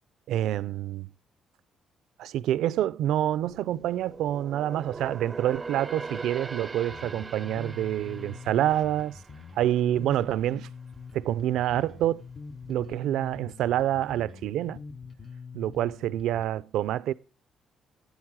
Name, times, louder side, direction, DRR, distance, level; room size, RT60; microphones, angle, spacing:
voice 1, 0.3-1.1 2.2-9.2 9.6-10.7 11.1-12.2 12.7-14.8 15.5-17.1, right 12 dB, 85° right, 0.5 m, -27 dB
sound 1, 3.3-10.7 11.0-11.3 11.8-12.5 12.9-13.0, right 3 dB, 25° right, 0.5 m, -42 dB
Bass guitar, 6.9-16.5, left 5 dB, 40° left, 0.9 m, -44 dB
8.9 x 8.1 x 7.4 m
cardioid pair, 90°, 0 cm